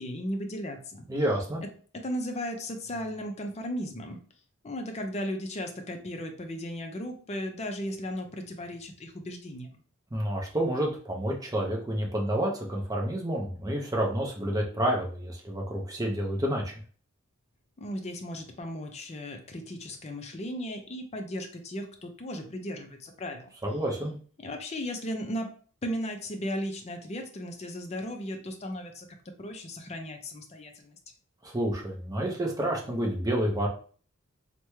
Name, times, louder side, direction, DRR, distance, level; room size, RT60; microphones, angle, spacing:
voice 1, 0.0-1.0 1.9-4.2 4.6-9.7 17.8-23.5 24.4-25.5 25.8-29.1 29.4-31.0, equal, 30° left, 4 dB, 0.5 m, -36 dB
voice 2, 1.1-1.6 10.1-16.7 23.6-24.1 31.4-33.7, right 1 dB, 15° right, 0 dB, 0.6 m, -29 dB
3.3 x 2.1 x 3.0 m, 0.43 s
head